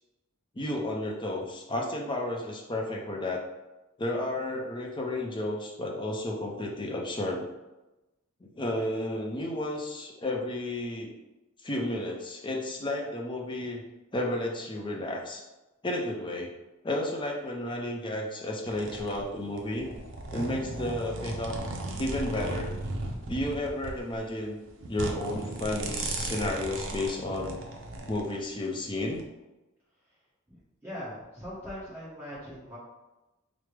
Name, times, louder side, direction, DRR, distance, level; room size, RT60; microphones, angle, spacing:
voice 1, 0.5-3.4 4.0-7.5 8.4-11.1 11.6-13.8 14.1-15.4 15.8-16.5 16.8-19.9 20.3-21.6 22.0-22.7 23.3-24.6 24.9-27.5 28.0-29.2, left 1 dB, 25° left, -1 dB, 0.5 m, -32 dB
sound 1, 18.7-28.3 29.0-29.2, right 2 dB, 60° right, 0.5 m, -36 dB
voice 2, 30.8-32.8, equal, 10° right, -9 dB, 1.2 m, -40 dB
4.6 x 2.1 x 3.2 m, 1.0 s
head